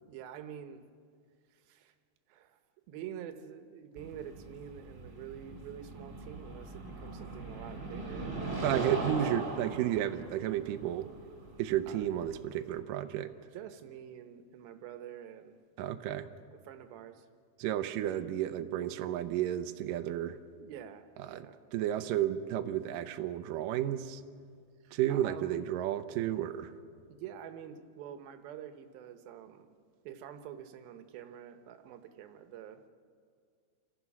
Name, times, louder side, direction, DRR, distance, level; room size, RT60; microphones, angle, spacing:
voice 1, 0.1-0.8 1.5-1.9 2.3-2.6 2.9-9.5 11.9-12.1 13.5-15.6 16.6-17.3 20.6-21.6 24.8-25.6 27.1-29.7 30.0-32.8, right 9 dB, 70° right, 8 dB, 2.6 m, -47 dB
sound 1, 4.0-12.8, right 2 dB, 20° right, 2.8 m, -40 dB
voice 2, 8.6-11.1 11.6-13.3 15.8-16.3 17.6-20.4 21.2-21.5 21.7-24.2 24.9-26.7, right 11 dB, 85° right, 8 dB, 1.9 m, -32 dB
28.5 x 15.5 x 6.0 m, 2.1 s
omnidirectional pair, 4.9 m